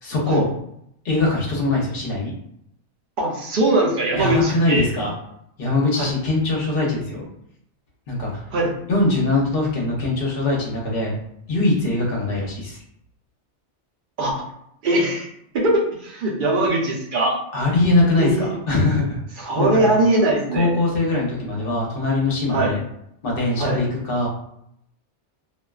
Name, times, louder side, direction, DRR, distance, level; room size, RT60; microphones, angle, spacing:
voice 1, 0.0-0.5 1.0-2.3 4.1-5.1 5.6-7.3 8.1-8.3 8.9-11.1 11.5-12.8 17.5-19.2 19.6-19.9 20.5-22.8 23.2-24.3, left 2 dB, 55° left, -2 dB, 0.9 m, -22 dB
voice 2, 3.2-4.8 6.0-6.1 8.5-8.7 14.2-14.3 14.8-15.3 15.5-17.4 18.2-18.5 19.4-20.7 22.5-22.7 23.6-23.8, right 2 dB, 55° right, -2 dB, 0.7 m, -21 dB
2.5 x 2.2 x 2.3 m, 0.74 s
omnidirectional pair, 1.2 m